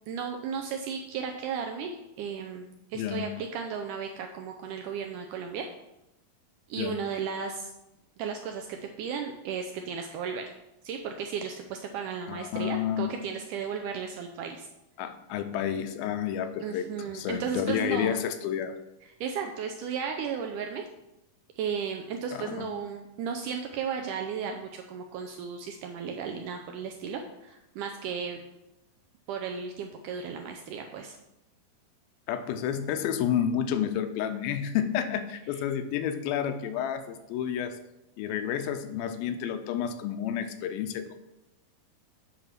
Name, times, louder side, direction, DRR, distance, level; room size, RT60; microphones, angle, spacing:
voice 1, 0.1-5.7 6.7-7.7 8.2-10.5 10.8-14.7 16.6-18.2 19.2-20.9 21.6-28.4 29.3-31.2, right 6 dB, 80° right, 4 dB, 1.8 m, -35 dB
voice 2, 3.0-3.3 6.8-7.0 12.3-13.1 15.0-18.8 22.3-22.7 32.3-37.8 38.2-41.2, left 9 dB, 90° left, 9 dB, 2.5 m, -30 dB
8.7 x 3.9 x 5.8 m, 0.90 s
omnidirectional pair, 4.2 m